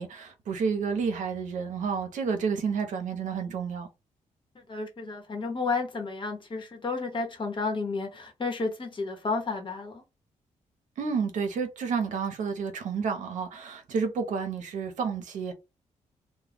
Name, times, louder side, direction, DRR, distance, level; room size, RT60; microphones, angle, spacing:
voice 1, 0.0-3.9 11.0-15.5, right 5 dB, 80° right, 0.7 m, -30 dB
voice 2, 4.5-10.0, left 3 dB, 40° left, 1.0 m, -32 dB
2.3 x 2.2 x 3.4 m
cardioid pair, 90°, 13 cm